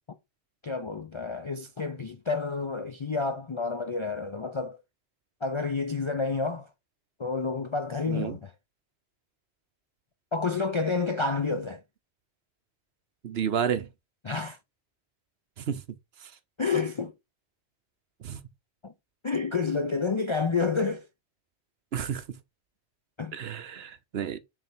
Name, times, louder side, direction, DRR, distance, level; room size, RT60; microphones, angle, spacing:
voice 1, 0.6-4.8 5.4-6.7 7.2-8.5 10.3-11.8 14.2-14.6 16.6-17.1 18.8-18.9 19.2-21.0 23.2-23.4, left 4 dB, 45° left, 0.4 m, -29 dB
voice 2, 13.2-13.9 15.6-15.8 18.2-18.4 21.9-22.2 23.3-24.4, right 8 dB, 65° right, 1.0 m, -31 dB
6.3 x 3.6 x 4.4 m
omnidirectional pair, 1.1 m